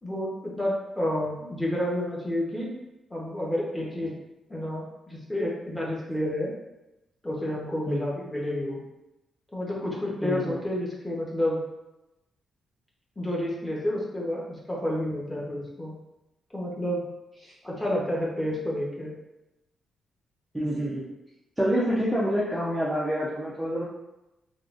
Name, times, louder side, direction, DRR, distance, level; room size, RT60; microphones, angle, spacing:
voice 1, 0.0-2.7 3.1-4.1 4.5-6.5 7.2-8.8 9.5-11.6 13.2-15.9 16.5-17.0 17.6-19.1, left 1 dB, 10° left, -4 dB, 0.9 m, -30 dB
voice 2, 10.2-10.6 17.4-17.5 20.5-21.1 21.6-23.9, equal, 5° right, -8 dB, 0.5 m, -27 dB
3.7 x 2.4 x 2.4 m, 0.94 s
cardioid pair, 125°, 0 cm